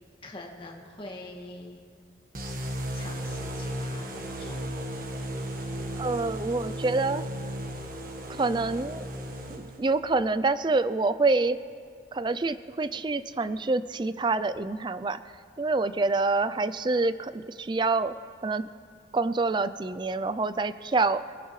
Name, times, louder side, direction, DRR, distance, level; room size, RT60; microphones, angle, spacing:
voice 1, 0.2-1.8 2.9-4.6, left 2 dB, 30° left, -2 dB, 1.9 m, -44 dB
sound 1, 2.3-10.0, equal, 50° right, 1.4 m, -35 dB
voice 2, 6.0-7.2 8.4-9.1 9.5-11.6 12.1-15.2 15.6-18.1 18.4-18.7 19.1-21.3, right 3 dB, 25° right, 14 dB, 0.4 m, -26 dB
25.5 x 14.0 x 3.2 m, 2.2 s
head